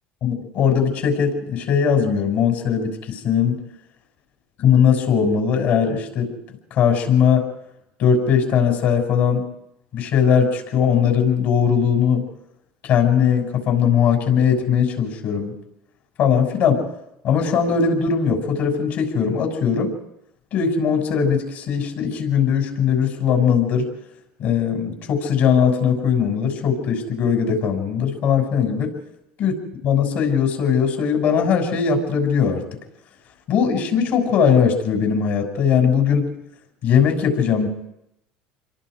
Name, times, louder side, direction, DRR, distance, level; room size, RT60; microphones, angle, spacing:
voice 1, 0.2-3.6 4.6-6.3 6.7-7.5 8.0-9.5 9.9-12.3 12.8-15.5 16.2-16.9 17.2-19.9 20.5-23.9 24.4-29.0 29.4-29.5 29.8-32.6 33.5-36.3 36.8-37.7, left 7 dB, 60° left, 4 dB, 6.4 m, -19 dB
28.0 x 23.0 x 5.0 m, 0.82 s
supercardioid pair, 105°, 4 cm